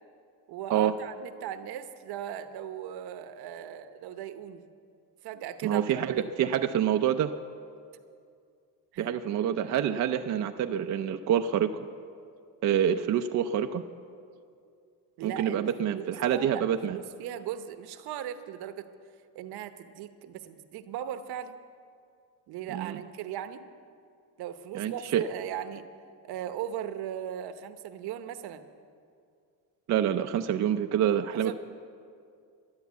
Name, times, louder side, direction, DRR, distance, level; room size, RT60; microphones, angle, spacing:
voice 1, 0.5-4.6 5.2-6.3 8.9-9.1 15.2-18.9 19.3-21.6 22.5-23.6 24.4-25.8 26.2-28.6 31.3-31.5, right 10 dB, 70° right, 10 dB, 0.9 m, -38 dB
voice 2, 5.6-7.3 9.0-11.8 12.6-13.8 15.2-17.0 22.7-23.0 24.7-25.2 29.9-31.5, right 9 dB, 45° right, 6 dB, 0.5 m, -27 dB
11.5 x 11.0 x 8.2 m, 2.3 s
cardioid pair, 125°, 40 cm